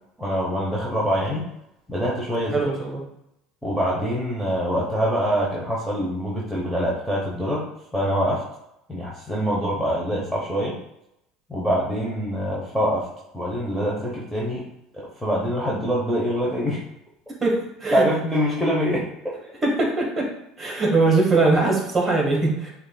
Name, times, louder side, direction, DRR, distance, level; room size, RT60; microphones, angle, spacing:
voice 1, 0.2-1.5 1.9-2.6 3.6-7.7 7.9-8.4 8.9-10.8 11.5-13.1 13.3-14.7 14.9-16.8 17.9-19.1 19.3-19.4, equal, ahead, -6 dB, 0.8 m, -24 dB
voice 2, 2.5-3.0 17.4-17.6 17.8-18.0 19.6-20.3 20.6-22.7, right 3 dB, 25° right, -1 dB, 1.5 m, -21 dB
6.3 x 2.5 x 2.2 m, 0.82 s
supercardioid pair, 95°, 0 cm